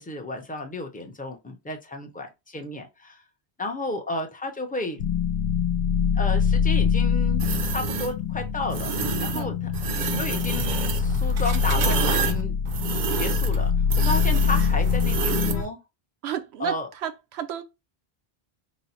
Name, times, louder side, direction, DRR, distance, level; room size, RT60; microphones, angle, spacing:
voice 1, 0.0-3.2 3.6-5.0 6.1-8.9 9.2-9.7 10.2-12.5 13.1-15.8 16.6-16.9, left 2 dB, 10° left, 0.5 m, -32 dB
sound 1, 5.0-15.6, left 6 dB, 80° left, 0.8 m, -24 dB
sound 2, 7.4-8.1 8.7-9.4 9.7-15.7, right 7 dB, 55° right, 0.6 m, -29 dB
voice 2, 16.2-16.7 17.0-17.6, right 10 dB, 85° right, 0.9 m, -31 dB
4.0 x 2.0 x 4.1 m
omnidirectional pair, 1.1 m